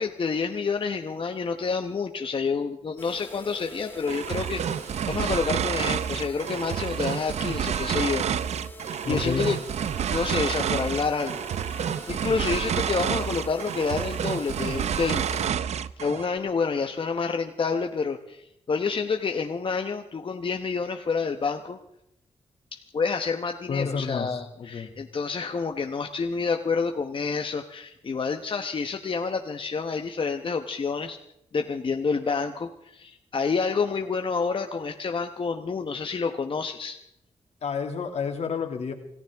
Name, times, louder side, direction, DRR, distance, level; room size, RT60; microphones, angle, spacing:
voice 1, 0.0-4.8 5.1-8.4 9.1-9.6 10.1-15.4 16.0-21.8 22.7-31.2 31.5-37.0, left 5 dB, 50° left, 5 dB, 1.0 m, -28 dB
sound 1, 3.0-15.5, equal, 20° left, 1.6 m, -45 dB
sound 2, 4.1-16.3, right 8 dB, 85° right, 0.6 m, -29 dB
voice 2, 9.0-9.5 23.7-24.9 37.6-38.9, left 5 dB, 75° left, 4 dB, 2.3 m, -30 dB
27.0 x 14.5 x 3.5 m, 0.81 s
cardioid pair, 75°, 11 cm